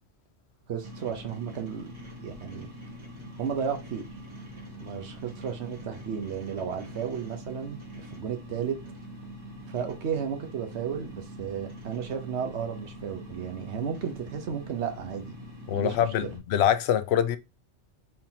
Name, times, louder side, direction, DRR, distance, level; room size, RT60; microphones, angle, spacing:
voice 1, 0.7-1.9 2.2-2.7 3.4-4.0 4.8-8.8 9.7-15.3 15.7-16.0, right 7 dB, 90° right, 1.2 m, -33 dB
sound 1, 0.8-16.4, equal, 25° right, 1.4 m, -44 dB
voice 2, 15.7-17.4, left 9 dB, 75° left, 0.8 m, -24 dB
4.4 x 3.7 x 2.8 m
omnidirectional pair, 1.1 m